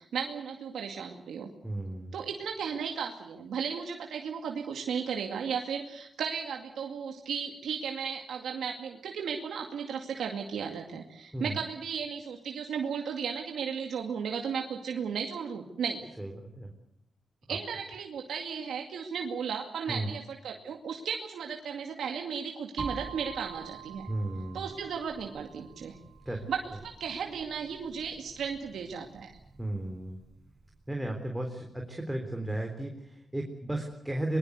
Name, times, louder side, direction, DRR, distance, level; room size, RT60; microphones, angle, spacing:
voice 1, 0.0-1.5 2.1-16.0 17.5-24.1 24.5-26.0 26.5-29.3, right 6 dB, 90° right, 2 dB, 2.2 m, -35 dB
voice 2, 1.6-2.2 11.3-11.6 16.2-16.7 17.5-17.6 19.9-20.1 24.1-24.7 26.3-26.5 29.6-30.2 30.9-34.4, right 1 dB, 5° right, 2 dB, 3.8 m, -34 dB
sound 1, 22.8-30.6, right 4 dB, 35° right, 5.1 m, -46 dB
23.5 x 21.5 x 8.2 m, 0.80 s
cardioid pair, 80°, 0 cm